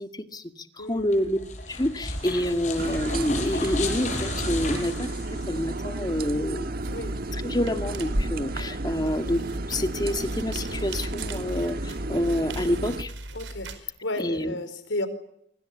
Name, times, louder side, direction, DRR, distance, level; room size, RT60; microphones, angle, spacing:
voice 1, 0.0-1.4 1.7-5.1 5.5-6.7 7.4-9.4 9.7-13.1 14.2-14.6, equal, 20° left, 8 dB, 2.1 m, -27 dB
voice 2, 0.8-1.2 6.9-7.2 13.3-15.1, left 2 dB, 80° left, 12 dB, 4.7 m, -33 dB
sound 1, 1.0-5.9, left 3 dB, 40° left, 6.6 m, -34 dB
sound 2, 2.8-13.0, right 2 dB, 50° right, 1.4 m, -33 dB
sound 3, 6.8-13.8, right 1 dB, 75° right, 4.6 m, -36 dB
25.0 x 25.0 x 8.6 m, 0.72 s
head